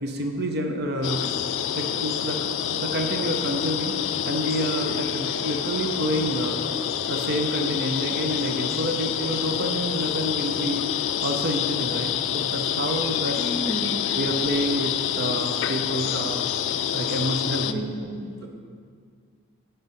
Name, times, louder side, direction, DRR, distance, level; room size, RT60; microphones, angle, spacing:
voice 1, 0.0-1.4 1.7-3.9 4.3-6.5 7.1-10.8 11.2-13.4 14.1-16.4 16.9-17.8, equal, 45° right, 3 dB, 0.7 m, -28 dB
sound 1, 1.0-17.7, left 9 dB, 55° left, 0.3 m, -27 dB
sound 2, 5.6-7.9, equal, ahead, 1.6 m, -47 dB
voice 2, 13.3-14.0 17.6-18.5, equal, 15° left, 0 dB, 1.1 m, -32 dB
9.5 x 5.5 x 5.5 m, 2.1 s
head